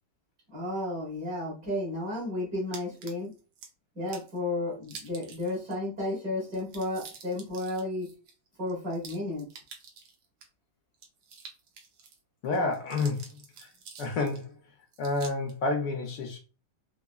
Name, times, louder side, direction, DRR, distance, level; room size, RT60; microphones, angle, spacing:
voice 1, 0.5-3.3 4.0-8.1 8.6-9.5, left 1 dB, 45° right, -4 dB, 2.1 m, -32 dB
sound 1, 2.7-3.7 4.1-4.4 4.8-5.7 6.0-6.1 6.4-10.5 10.9-12.2 12.5-14.4 14.9-15.5, right 5 dB, 75° right, 1.6 m, -48 dB
voice 2, 12.4-13.4 14.0-14.6 15.0-16.4, left 3 dB, 70° left, 2 dB, 1.2 m, -29 dB
4.8 x 3.0 x 2.3 m, 0.35 s
omnidirectional pair, 2.2 m